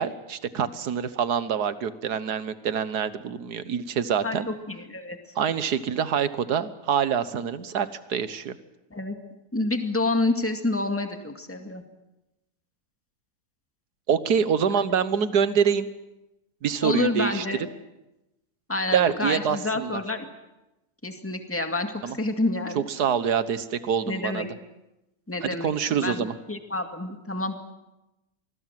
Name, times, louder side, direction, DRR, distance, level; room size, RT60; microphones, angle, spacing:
voice 1, 0.0-4.5 5.4-8.6 14.1-15.9 16.6-17.5 18.9-20.0 22.0-22.2 22.8-24.5 25.4-26.3, right 7 dB, 80° right, 13 dB, 1.7 m, -25 dB
voice 2, 4.2-5.2 8.9-9.2 9.5-11.8 14.7-15.0 16.8-17.7 18.7-20.3 21.0-22.9 24.1-24.5 25.3-27.7, left 2 dB, 10° left, 5 dB, 2.0 m, -28 dB
25.5 x 20.5 x 7.7 m, 0.97 s
omnidirectional pair, 1.7 m